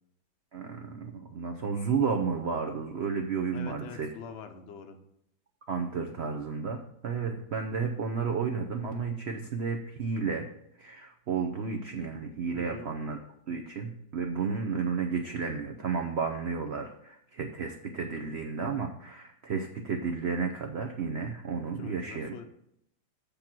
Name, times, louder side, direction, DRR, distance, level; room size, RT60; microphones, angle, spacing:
voice 1, 0.5-4.1 5.7-10.5 10.8-13.2 13.5-22.3, right 5 dB, 75° right, 3 dB, 0.6 m, -32 dB
voice 2, 3.5-5.0 12.5-12.9 21.8-22.5, left 5 dB, 55° left, 6 dB, 0.8 m, -44 dB
7.1 x 5.2 x 6.0 m, 0.75 s
omnidirectional pair, 2.0 m